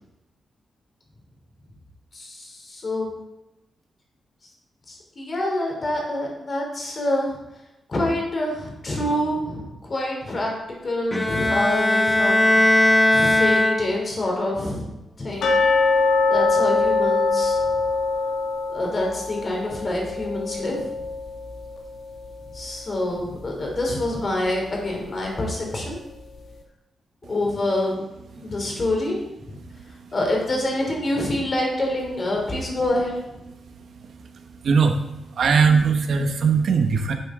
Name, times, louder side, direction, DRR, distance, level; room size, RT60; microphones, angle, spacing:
voice 1, 2.1-3.1 4.9-7.4 7.9-12.8 13.1-14.9 15.2-15.5 16.3-17.6 18.7-20.8 22.5-26.0 27.3-28.0 28.4-29.6 30.1-33.1, left 1 dB, 35° left, 0 dB, 2.9 m, -26 dB
Bowed string instrument, 11.1-14.3, left 1 dB, 10° left, 0.6 m, -19 dB
sound 1, 15.4-22.3 22.5-22.6 23.2-23.3 23.8-23.9, left 3 dB, 85° left, 1.6 m, -23 dB
voice 2, 33.7-35.0 35.3-37.1, right 5 dB, 65° right, 5 dB, 1.1 m, -21 dB
10.0 x 7.5 x 3.7 m, 0.97 s
wide cardioid pair, 150°, 0 cm